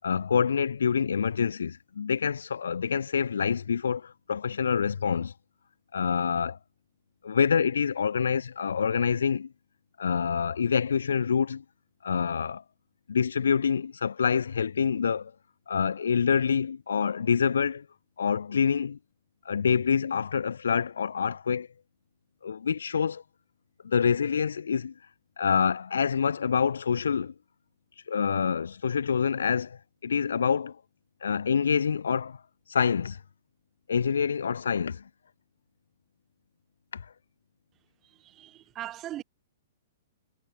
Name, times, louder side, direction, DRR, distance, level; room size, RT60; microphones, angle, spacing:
voice 1, 0.0-5.3 5.9-6.6 7.2-9.5 10.0-11.6 12.0-12.6 13.1-15.3 15.7-17.8 18.2-19.0 19.5-21.7 22.4-23.2 23.8-24.9 25.4-27.3 28.1-30.8 31.2-32.4 32.7-33.2 33.9-35.0 36.9-37.0, left 6 dB, 80° left, 7.4 m, -26 dB
voice 2, 38.2-39.2, right 13 dB, 25° right, 7.9 m, -39 dB
hypercardioid pair, 130°, 0 cm